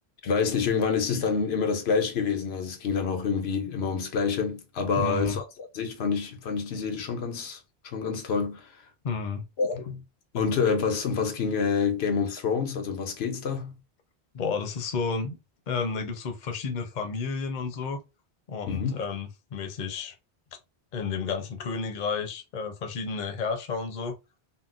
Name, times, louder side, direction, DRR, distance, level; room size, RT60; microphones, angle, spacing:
voice 1, 0.2-8.7 9.6-10.0 10.3-13.7 18.7-19.0, left 5 dB, 90° left, 0.9 m, -27 dB
voice 2, 5.0-5.4 9.0-9.4 14.3-15.4 15.7-18.0 18.5-20.1 20.9-24.2, left 5 dB, 55° left, 0.7 m, -31 dB
3.8 x 2.0 x 2.4 m
omnidirectional pair, 1.0 m